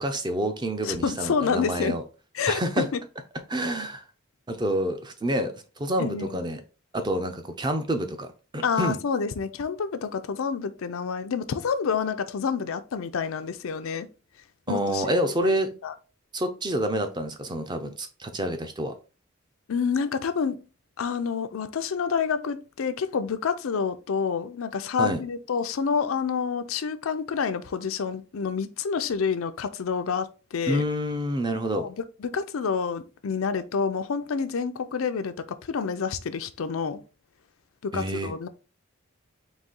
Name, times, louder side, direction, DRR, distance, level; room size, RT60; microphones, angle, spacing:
voice 1, 0.0-2.0 2.5-2.9 3.5-4.0 4.5-6.6 6.9-8.3 8.5-9.0 14.7-15.7 16.3-18.9 25.0-25.2 30.7-31.9 37.9-38.3, right 1 dB, 20° right, 0.5 m, -28 dB
voice 2, 0.8-2.0 2.3-3.0 6.0-6.4 8.6-14.1 14.7-15.1 15.4-15.9 19.7-20.7 21.0-30.8 31.5-31.9 32.2-37.0 37.8-38.5, left 6 dB, 90° left, 0.5 m, -28 dB
4.1 x 2.8 x 3.7 m
head